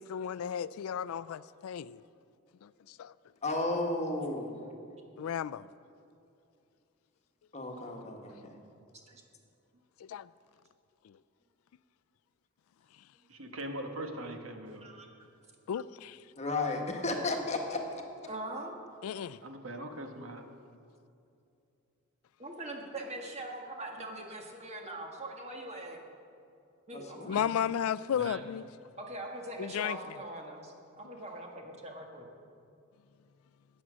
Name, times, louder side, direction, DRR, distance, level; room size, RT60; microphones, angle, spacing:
voice 1, 0.0-2.0 2.6-3.1 5.2-5.7 10.1-10.3 11.0-11.1 15.7-16.2 19.0-19.4 27.3-28.6 29.6-30.0, left 8 dB, 90° left, 0.3 m, -34 dB
voice 2, 3.4-4.5 7.5-8.6 16.4-18.0 26.9-27.5, left 2 dB, 35° left, 1.5 m, -33 dB
voice 3, 13.3-14.8 19.4-20.4 28.1-28.4, right 1 dB, 75° right, 1.3 m, -41 dB
voice 4, 18.3-18.8 22.4-26.0 26.9-27.4 29.0-32.3, right 1 dB, 30° right, 1.6 m, -42 dB
14.0 x 8.8 x 6.2 m
head